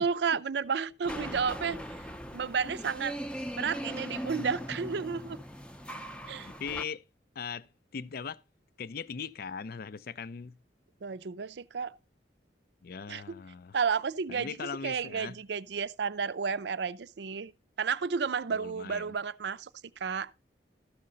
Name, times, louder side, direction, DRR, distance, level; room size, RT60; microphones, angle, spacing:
voice 1, 0.0-1.8 2.3-3.2 3.6-5.4 6.3-6.5 11.0-12.0 13.1-13.2 13.7-17.5 17.8-19.7 20.0-20.3, right 6 dB, 70° right, 0.5 m, -32 dB
sound 1, 1.0-6.8, equal, 5° left, 0.6 m, -39 dB
voice 2, 6.6-7.0 7.4-7.7 7.9-8.4 8.8-10.6 12.8-13.8 14.3-15.4 18.5-19.1, left 6 dB, 55° left, 0.5 m, -39 dB
13.0 x 6.6 x 3.9 m
head